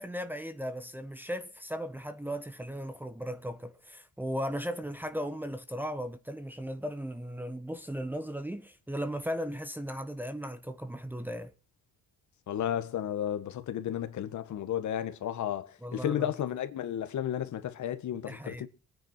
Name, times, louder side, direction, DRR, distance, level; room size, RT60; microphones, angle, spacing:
voice 1, 0.0-11.5 15.8-16.3 18.3-18.7, equal, 5° right, 1.2 m, -37 dB
voice 2, 12.5-18.7, left 10 dB, 70° left, 1.6 m, -33 dB
23.0 x 9.5 x 4.5 m
cardioid pair, 90°, 30 cm